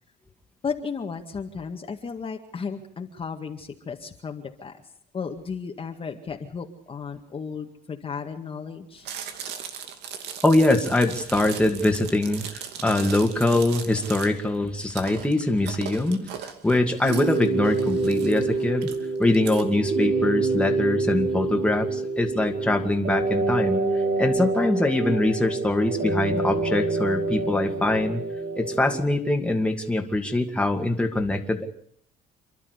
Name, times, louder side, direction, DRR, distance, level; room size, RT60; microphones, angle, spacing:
voice 1, 0.6-4.7 5.1-9.1, left 5 dB, 35° left, 3 dB, 2.0 m, -34 dB
Chewing mastication, 9.0-19.6, right 8 dB, 80° right, 2.5 m, -38 dB
voice 2, 10.4-18.9 19.2-28.2 28.6-31.7, left 2 dB, 5° left, 3 dB, 2.5 m, -23 dB
sound 1, 17.0-29.0, right 3 dB, 55° right, 4.0 m, -26 dB
28.0 x 12.0 x 8.3 m, 0.63 s
cardioid pair, 110°, 17 cm